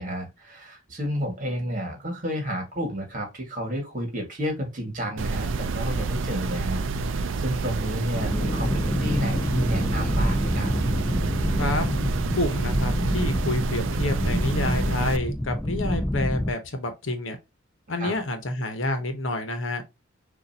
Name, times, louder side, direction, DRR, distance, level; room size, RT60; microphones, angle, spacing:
voice 1, 0.0-10.7 18.0-18.1, equal, 40° right, 1.7 m, -31 dB
sound 1, 5.2-15.2, right 4 dB, 65° right, 0.4 m, -28 dB
sound 2, 8.1-16.5, left 1 dB, 5° left, 0.4 m, -27 dB
voice 2, 12.3-17.4 17.9-19.8, left 1 dB, 65° left, 1.0 m, -28 dB
6.6 x 2.6 x 2.8 m
head